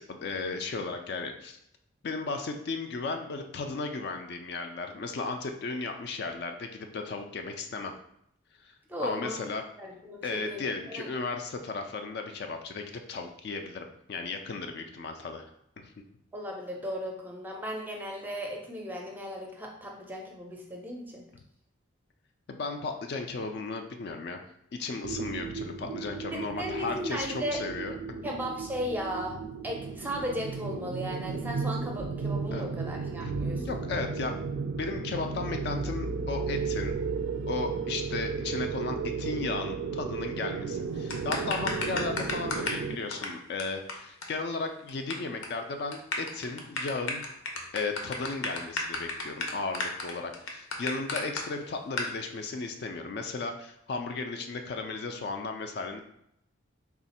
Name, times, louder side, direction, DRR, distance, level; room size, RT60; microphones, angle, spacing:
voice 1, 0.0-1.6 2.0-7.9 8.6-9.6 10.2-15.9 22.5-24.4 24.7-27.9 32.5-32.7 33.2-33.3 33.6-37.0 37.5-47.2 47.7-56.0, left 3 dB, 50° left, 5 dB, 0.3 m, -35 dB
voice 2, 8.9-9.4 9.8-11.1 16.3-21.3 26.3-27.6 28.2-29.4 29.6-33.7, equal, 10° right, 0 dB, 0.5 m, -36 dB
sound 1, 25.0-43.0, right 5 dB, 80° right, 0.4 m, -34 dB
sound 2, 41.1-42.8 43.1-43.3 43.6-43.7 43.9-44.0 44.2-44.3 44.5-45.1 45.4-45.6 45.9-51.4 52.0-52.1, left 3 dB, 85° left, 0.7 m, -32 dB
3.5 x 2.4 x 4.1 m, 0.75 s
head